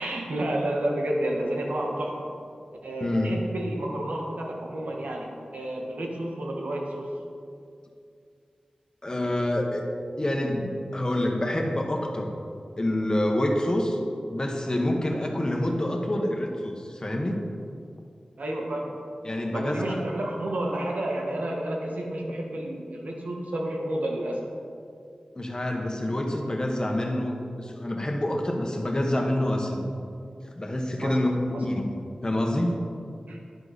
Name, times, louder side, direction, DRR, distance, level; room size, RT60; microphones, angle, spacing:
voice 1, 0.0-2.4 2.8-7.1 18.4-19.0 19.5-24.5 31.0-31.3 31.5-31.6 33.3-33.4, right 1 dB, 85° right, 0 dB, 1.6 m, -30 dB
voice 2, 3.0-3.3 9.0-9.9 10.2-12.3 12.8-14.0 14.3-17.4 19.2-20.0 25.3-29.9 30.4-31.9 32.2-32.8, left 1 dB, 30° left, 2 dB, 1.5 m, -27 dB
11.0 x 10.0 x 4.2 m, 2.3 s
wide cardioid pair, 60°, 2 cm